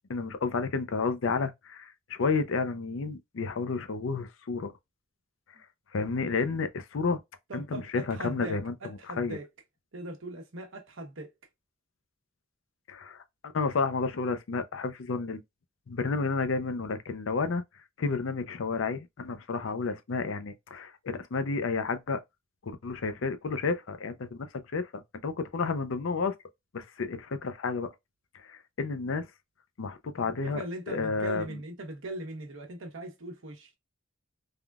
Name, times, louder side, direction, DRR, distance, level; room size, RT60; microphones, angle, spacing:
voice 1, 0.1-4.7 5.9-7.2 7.5-8.7 9.2-9.4 12.9-13.2 13.5-15.4 15.9-17.6 18.0-22.2 22.6-26.3 26.7-27.9 28.3-29.3 29.8-31.6, left 4 dB, 80° left, 0.5 m, -31 dB
voice 2, 7.5-9.5 9.9-11.3 30.2-33.7, right 1 dB, 80° right, 1.0 m, -40 dB
3.5 x 2.3 x 2.3 m
head